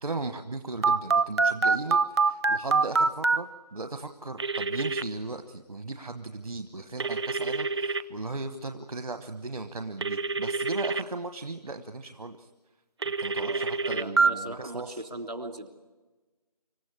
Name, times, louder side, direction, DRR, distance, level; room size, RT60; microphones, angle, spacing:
voice 1, 0.0-12.5 13.0-15.0, right 3 dB, 60° right, 8 dB, 1.2 m, -37 dB
Telephone, 0.8-3.4 4.4-5.0 7.0-8.0 10.0-11.0 13.0-14.3, right 4 dB, 40° right, 0.7 m, -25 dB
voice 2, 13.4-15.7, right 1 dB, 80° right, 5 dB, 3.2 m, -39 dB
26.0 x 14.5 x 8.5 m, 1.2 s
figure-of-eight pair, 160°, 20 cm